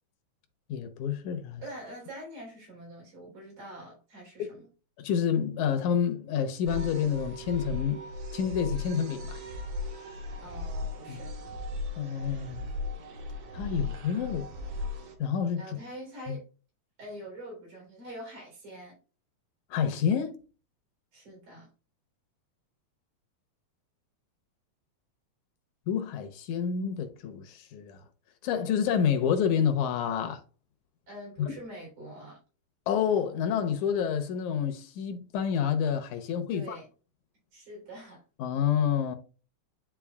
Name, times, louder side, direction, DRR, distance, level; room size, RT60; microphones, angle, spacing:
voice 1, 0.7-1.6 4.4-4.5 5.0-8.1 8.3-9.4 11.1-11.2 12.0-12.7 13.5-14.5 15.2-15.8 16.3-16.4 19.7-20.4 25.9-28.0 28.4-30.4 31.4-31.5 32.9-36.8 38.4-39.2, left 8 dB, 80° left, 2.2 m, -28 dB
voice 2, 1.6-4.7 10.4-11.4 15.6-16.5 17.0-19.0 21.1-21.7 31.1-32.4 36.5-36.9 37.5-38.2, right 1 dB, 75° right, 5.1 m, -44 dB
sound 1, 6.7-15.1, left 2 dB, 60° right, 1.9 m, -37 dB
11.0 x 3.9 x 2.4 m
omnidirectional pair, 3.5 m